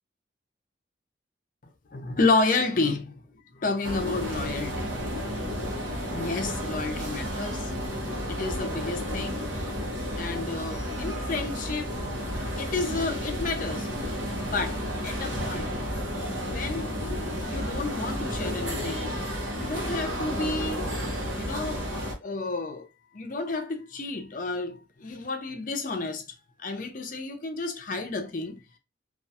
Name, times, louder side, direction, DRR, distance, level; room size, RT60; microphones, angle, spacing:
voice 1, 1.9-3.2 3.5-4.9 6.1-9.5 10.2-12.0 12.6-13.9 14.3-15.7 16.4-16.9 17.4-19.2 19.6-20.9 21.4-21.9 22.2-22.9 23.1-26.3 26.6-28.6, left 3 dB, 45° left, 0.5 m, -31 dB
sound 1, 3.8-22.1, equal, 80° right, 0.8 m, -32 dB
2.3 x 2.2 x 2.7 m
head